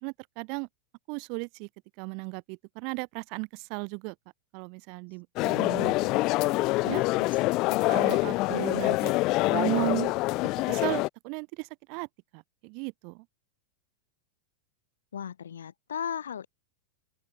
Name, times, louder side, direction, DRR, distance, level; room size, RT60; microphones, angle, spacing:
voice 1, 0.0-0.7 1.1-1.7 2.0-4.1 4.5-6.2 6.4-6.5 6.8-7.0 7.9-9.1 9.5-10.1 10.7-12.1 12.3-13.2, right 37 dB, 45° right, 1.1 m, -35 dB
sound 1, 5.4-11.1, left 21 dB, 40° left, 0.4 m, -26 dB
voice 2, 6.9-7.3 15.1-16.5, left 8 dB, 65° left, 1.3 m, -37 dB
open air
figure-of-eight pair, 90°, 0 cm